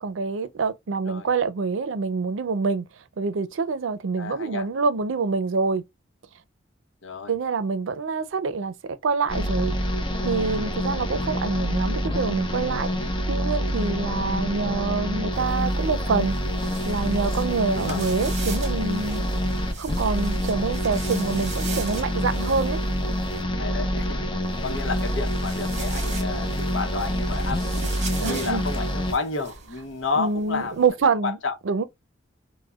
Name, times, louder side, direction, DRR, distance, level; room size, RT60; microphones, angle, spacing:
voice 1, 0.0-2.8 3.2-5.8 7.3-9.7 10.2-16.4 16.9-19.2 19.8-22.8 28.2-28.6 30.2-31.4 31.7-31.8, right 4 dB, 85° right, 0.5 m, -26 dB
voice 2, 4.2-4.7 7.0-7.3 17.7-18.0 23.6-24.2 24.6-27.9 28.3-30.8 31.2-31.6, left 4 dB, 80° left, 0.8 m, -31 dB
sound 1, 9.3-29.1, equal, 25° left, 0.6 m, -27 dB
sound 2, 15.3-23.4 24.4-30.9, right 5 dB, 40° right, 0.9 m, -41 dB
4.8 x 2.1 x 2.3 m
head